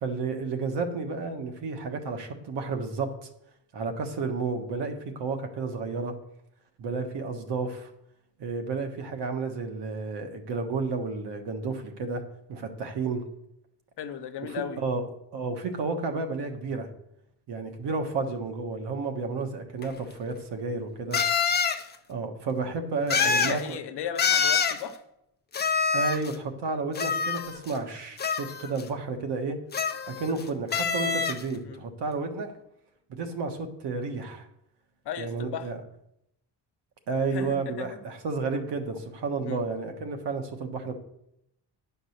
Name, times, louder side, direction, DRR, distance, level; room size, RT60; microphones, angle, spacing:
voice 1, 0.0-3.3 3.7-6.1 6.8-7.9 8.4-12.2 12.5-13.2 14.4-15.0 15.3-16.9 17.5-21.2 22.1-23.8 25.9-29.6 30.1-32.5 33.1-34.4 35.2-35.8 37.1-40.9, right 4 dB, 85° right, 5 dB, 1.5 m, -31 dB
voice 2, 14.0-14.8 23.1-25.0 31.6-31.8 35.0-35.7 37.3-38.0 39.4-39.6, left 8 dB, 75° left, 9 dB, 1.0 m, -36 dB
sound 1, 19.8-19.9 21.1-21.8 23.1-23.6 24.2-24.8 25.5-26.3 26.9-27.8 28.2-28.8 29.7-30.4 30.7-31.4, left 6 dB, 25° left, 0.6 m, -26 dB
10.5 x 5.2 x 6.5 m, 0.80 s
cardioid pair, 155°, 40 cm